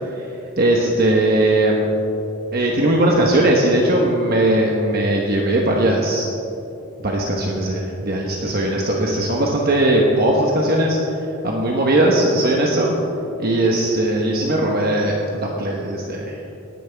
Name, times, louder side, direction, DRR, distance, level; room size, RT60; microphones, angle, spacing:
voice 1, 0.6-1.9 2.5-6.3 7.0-11.0 11.4-12.9 13.4-16.3, right 1 dB, 45° right, -1 dB, 1.2 m, -19 dB
18.5 x 10.5 x 3.5 m, 2.8 s
head